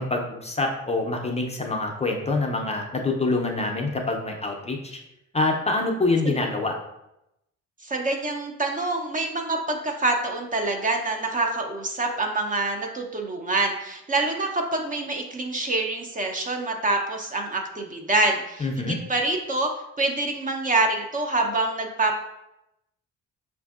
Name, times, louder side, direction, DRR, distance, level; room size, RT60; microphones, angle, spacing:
voice 1, 0.0-5.0 5.3-6.7 18.6-19.0, left 2 dB, 20° left, 1 dB, 0.5 m, -26 dB
voice 2, 7.8-22.2, right 2 dB, 25° right, 2 dB, 0.5 m, -26 dB
5.0 x 2.6 x 2.4 m, 0.87 s
cardioid pair, 90°, 30 cm